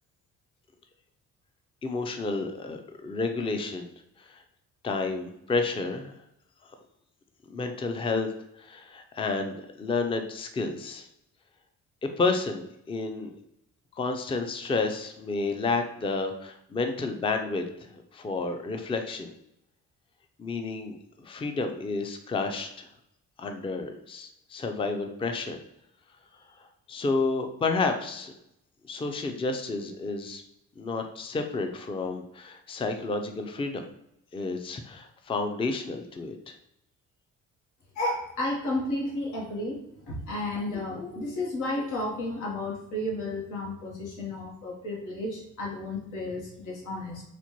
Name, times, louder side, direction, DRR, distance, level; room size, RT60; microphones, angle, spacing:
voice 1, 1.8-3.9 4.3-4.4 4.8-6.1 7.5-8.3 8.6-11.1 12.2-13.3 14.0-17.6 17.9-19.3 20.4-22.9 23.4-25.6 26.9-28.3 28.8-30.4 30.8-33.8 34.3-36.5, left 3 dB, 20° left, 6 dB, 0.4 m, -30 dB
voice 2, 37.9-39.8 40.1-47.2, left 1 dB, 90° left, -2 dB, 1.1 m, -32 dB
4.1 x 2.2 x 2.9 m, 0.78 s
cardioid pair, 90°, 30 cm